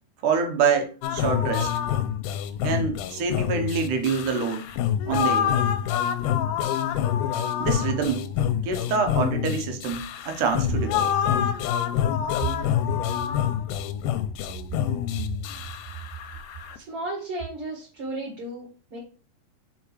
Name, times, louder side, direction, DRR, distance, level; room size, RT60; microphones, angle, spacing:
voice 1, 0.2-1.7 2.6-4.7 5.0-5.6 7.6-8.2 8.6-11.1, right 5 dB, 80° right, 2.5 m, -26 dB
sound 1, 1.0-16.8, left 9 dB, 90° left, 2.1 m, -27 dB
voice 2, 16.7-19.0, right 1 dB, 50° right, 2.5 m, -34 dB
5.2 x 4.8 x 4.7 m
omnidirectional pair, 3.6 m